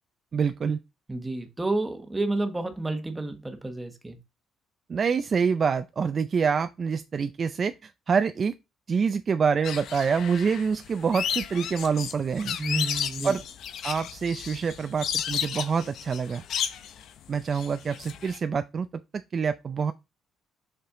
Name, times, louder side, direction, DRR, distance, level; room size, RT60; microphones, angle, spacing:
voice 1, 0.3-0.8 4.9-8.6 8.9-12.6 13.2-13.4 13.8-16.4 17.3-19.9, right 6 dB, 35° right, 0.4 m, -26 dB
voice 2, 1.1-4.2 12.6-13.4, right 2 dB, 10° right, 1.2 m, -30 dB
sound 1, 9.6-18.4, left 9 dB, 65° left, 0.8 m, -33 dB
6.0 x 5.6 x 3.7 m
cardioid pair, 130°, 0 cm